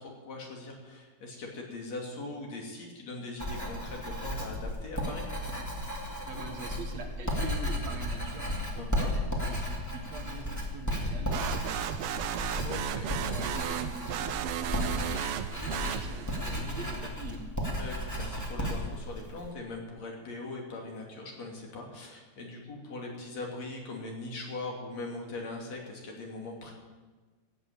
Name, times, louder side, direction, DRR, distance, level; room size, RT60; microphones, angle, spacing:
voice 1, 0.0-5.3 8.8-9.2 12.6-13.1 16.5-17.1 17.8-26.7, left 2 dB, 60° left, 0 dB, 3.8 m, -41 dB
Writing, 3.4-19.5, left 1 dB, 5° left, 2.2 m, -34 dB
voice 2, 6.0-12.6 13.1-17.5, right 3 dB, 65° right, 3 dB, 2.8 m, -44 dB
sound 1, 11.3-16.5, right 10 dB, 80° right, 1.3 m, -34 dB
16.0 x 9.0 x 8.7 m, 1.3 s
omnidirectional pair, 3.4 m